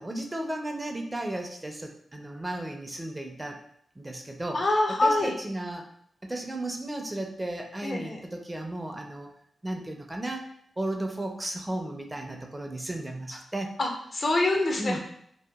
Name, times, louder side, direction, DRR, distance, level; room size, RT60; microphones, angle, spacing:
voice 1, 0.0-3.6 4.0-4.6 4.9-5.9 6.2-9.3 9.6-13.7 14.8-15.0, right 1 dB, 20° right, 3 dB, 0.4 m, -34 dB
voice 2, 4.5-5.3 7.8-8.2 13.8-15.0, left 2 dB, 55° left, 2 dB, 0.5 m, -25 dB
2.8 x 2.2 x 2.2 m, 0.68 s
cardioid pair, 50°, 0 cm